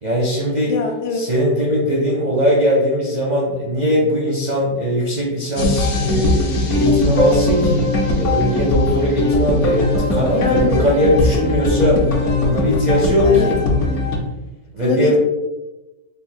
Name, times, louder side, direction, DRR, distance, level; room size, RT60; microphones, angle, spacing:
voice 1, 0.0-0.7 1.1-12.0 12.4-13.6 14.7-15.2, equal, 55° right, -4 dB, 0.5 m, -19 dB
voice 2, 0.7-1.3 10.3-11.1 13.2-13.5 14.8-15.2, left 4 dB, 80° left, 4 dB, 1.2 m, -23 dB
sound 1, 5.6-14.2, left 2 dB, 60° left, 0.9 m, -19 dB
3.5 x 2.3 x 4.2 m, 1.1 s
omnidirectional pair, 1.8 m